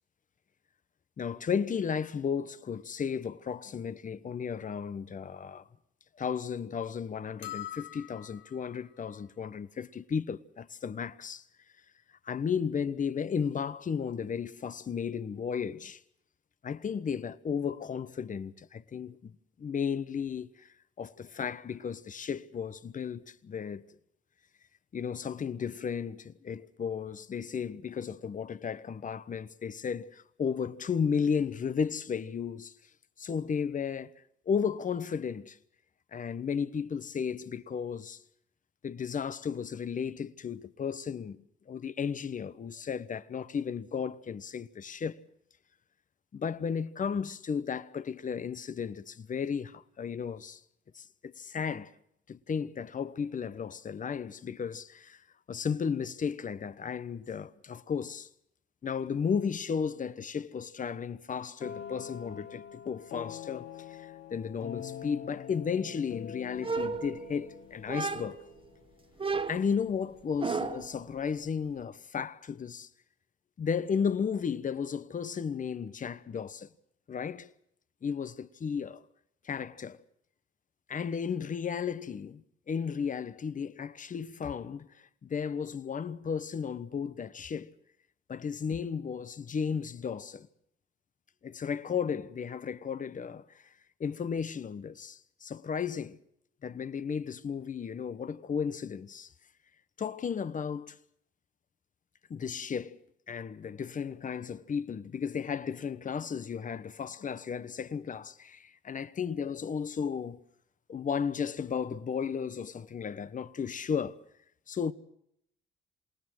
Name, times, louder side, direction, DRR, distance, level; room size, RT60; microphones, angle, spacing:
voice 1, 1.2-5.7 6.2-11.4 12.2-16.0 16.6-20.7 21.0-23.8 24.9-32.7 33.2-34.1 34.5-35.6 36.1-38.2 38.8-45.2 46.3-50.6 50.9-51.9 52.3-55.2 55.5-58.3 58.8-68.4 69.5-72.9 73.6-76.7 77.1-77.5 78.0-79.0 79.4-80.0 80.9-87.7 88.3-90.5 91.4-93.6 94.0-96.2 96.6-99.3 100.0-101.0 102.3-103.0 103.3-110.4 110.9-114.2 114.7-114.9, left 6 dB, 40° left, 1.1 m, -34 dB
sound 1, 7.4-8.8, left 13 dB, 65° left, 1.2 m, -43 dB
sound 2, 61.6-69.3, left 9 dB, 85° left, 1.7 m, -45 dB
sound 3, 66.6-67.5 67.9-68.5 69.2-71.0, right 4 dB, 25° right, 1.6 m, -34 dB
27.5 x 18.5 x 6.3 m
cardioid pair, 90°, 20 cm